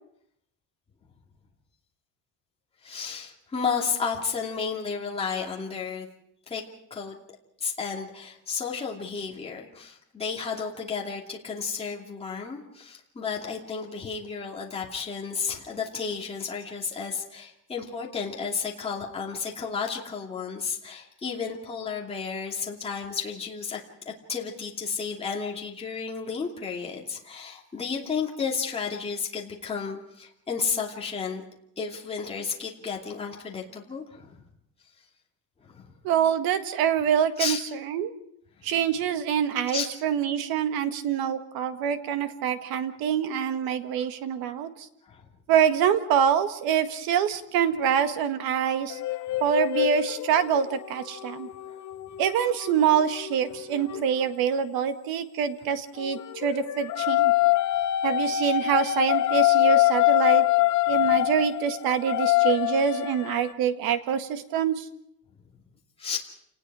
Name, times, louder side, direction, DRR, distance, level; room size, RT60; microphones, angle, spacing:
voice 1, 2.8-6.1 6.5-6.6 6.9-7.1 7.6-23.8 24.0-31.4 31.8-34.3 35.6-35.9 37.4-37.6 39.7-39.9 45.0-45.2 49.3-49.4 51.7-51.8 66.0-66.2, left 5 dB, 15° left, -2 dB, 2.7 m, -32 dB
voice 2, 36.0-38.1 38.6-44.9 45.5-49.0 49.4-51.5 52.2-57.3 58.0-60.5 60.9-64.9, right 8 dB, 85° right, 9 dB, 1.7 m, -25 dB
sound 1, 48.9-54.0 56.0-63.5, left 16 dB, 55° left, 1.0 m, -25 dB
29.0 x 19.0 x 4.9 m, 0.75 s
cardioid pair, 175°, 35 cm